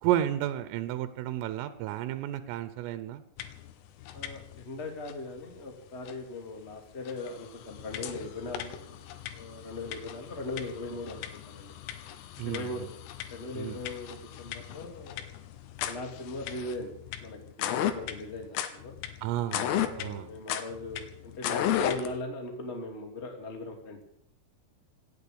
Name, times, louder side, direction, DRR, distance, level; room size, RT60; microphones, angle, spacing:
voice 1, 0.0-3.2 12.4-12.9 13.6-13.8 19.2-19.7 20.0-20.3, right 12 dB, 90° right, 12 dB, 3.5 m, -32 dB
sound 1, 3.4-3.7 4.0-4.6 5.1-5.2 6.1-6.2 6.7-6.8 7.1-22.2, left 11 dB, 90° left, 3.8 m, -36 dB
voice 2, 4.1-11.7 12.4-12.9 13.3-15.3 15.9-17.4 17.7-19.0 19.8-24.0, left 2 dB, 20° left, 3 dB, 1.8 m, -39 dB
17.5 x 9.3 x 8.6 m, 0.70 s
omnidirectional pair, 5.8 m